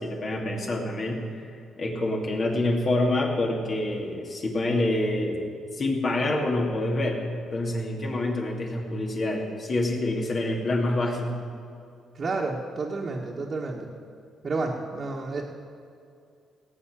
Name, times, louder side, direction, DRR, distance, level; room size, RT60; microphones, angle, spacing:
voice 1, 0.0-5.4 5.7-7.2 7.5-11.3, left 2 dB, 45° left, 0 dB, 2.7 m, -27 dB
voice 2, 12.1-13.9 14.4-15.4, right 3 dB, 40° right, -4 dB, 1.6 m, -30 dB
17.5 x 8.0 x 7.5 m, 2.4 s
cardioid pair, 90°, 0 cm